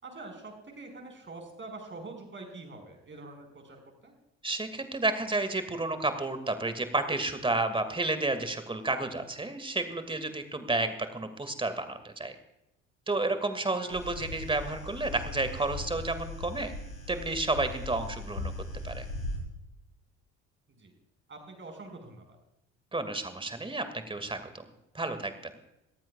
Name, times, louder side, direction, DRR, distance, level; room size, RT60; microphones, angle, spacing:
voice 1, 0.0-4.1 14.1-14.2 20.7-20.9 21.3-22.4, right 3 dB, 30° right, 3 dB, 5.5 m, -45 dB
voice 2, 4.4-12.4 13.1-16.7 17.1-18.5 18.8-19.1 22.9-24.6 24.9-25.5, right 2 dB, 15° right, 10 dB, 2.2 m, -31 dB
sound 1, 13.9-19.4, left 2 dB, 85° left, 2.7 m, -39 dB
21.0 x 14.5 x 2.4 m, 0.88 s
figure-of-eight pair, 55°, 38 cm